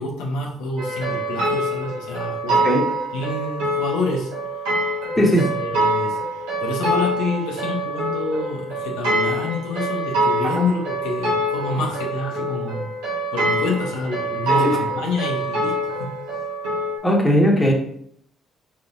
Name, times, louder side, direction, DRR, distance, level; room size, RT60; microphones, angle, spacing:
voice 1, 0.0-2.6 3.1-4.3 5.1-12.9 13.3-16.2, left 2 dB, 80° left, -1 dB, 0.9 m, -27 dB
sound 1, 0.8-17.0, right 1 dB, 85° right, 1.5 m, -25 dB
voice 2, 17.0-17.7, equal, 10° left, -2 dB, 1.5 m, -17 dB
4.1 x 4.0 x 2.6 m, 0.67 s
supercardioid pair, 60°, 0 cm